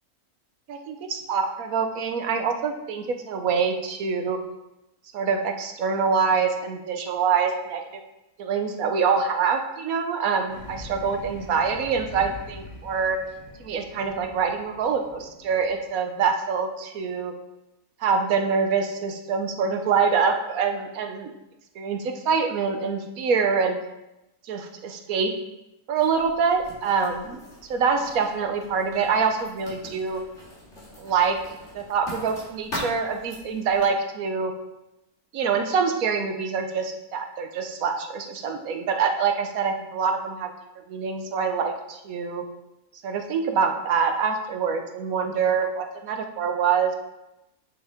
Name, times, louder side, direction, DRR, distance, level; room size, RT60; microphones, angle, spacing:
voice 1, 0.7-4.4 5.1-7.8 8.4-13.2 13.6-17.3 18.0-21.3 21.8-23.8 24.5-25.3 25.9-27.4 27.7-30.2 31.0-31.4 31.7-34.5 35.3-40.5 40.9-42.4 43.0-46.9, right 5 dB, 75° right, 6 dB, 1.3 m, -25 dB
sound 1, 10.5-15.8, left 1 dB, 25° left, 2.5 m, -43 dB
Writing, 26.0-33.8, left 1 dB, 50° left, 2.7 m, -41 dB
8.5 x 5.9 x 3.6 m, 0.95 s
omnidirectional pair, 1.5 m